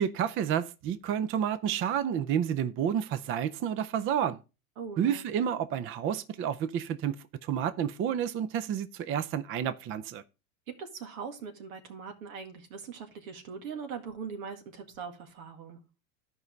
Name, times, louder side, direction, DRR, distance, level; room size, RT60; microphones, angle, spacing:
voice 1, 0.0-4.4 5.0-7.2 7.4-10.2, right 9 dB, 30° right, 0.5 m, -30 dB
voice 2, 4.8-5.3 10.7-15.8, right 6 dB, 85° right, 2.1 m, -41 dB
13.0 x 5.3 x 3.2 m
supercardioid pair, 125°, 41 cm